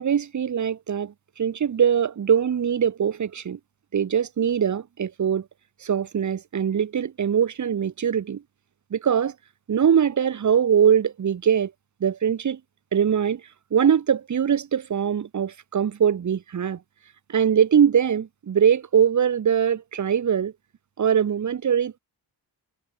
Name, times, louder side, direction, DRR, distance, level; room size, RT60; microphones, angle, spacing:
voice 1, 0.0-3.6 3.9-5.4 5.8-8.4 8.9-9.3 9.7-11.7 12.0-12.6 12.9-13.4 13.7-16.8 17.3-20.5 21.0-22.0, right 8 dB, 45° right, 1.1 m, -22 dB
wide cardioid pair, 140°, 40 cm